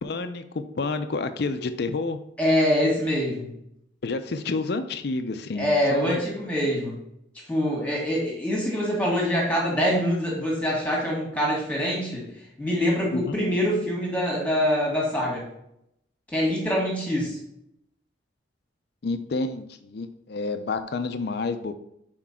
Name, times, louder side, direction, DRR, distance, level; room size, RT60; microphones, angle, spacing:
voice 1, 0.0-2.2 4.0-6.2 13.1-13.2 19.0-21.7, left 3 dB, 55° left, 9 dB, 0.5 m, -29 dB
voice 2, 2.4-3.5 5.5-7.0 7.5-12.3 12.6-15.4 16.3-17.4, equal, 5° left, -3 dB, 1.8 m, -24 dB
6.1 x 4.4 x 4.3 m, 0.77 s
head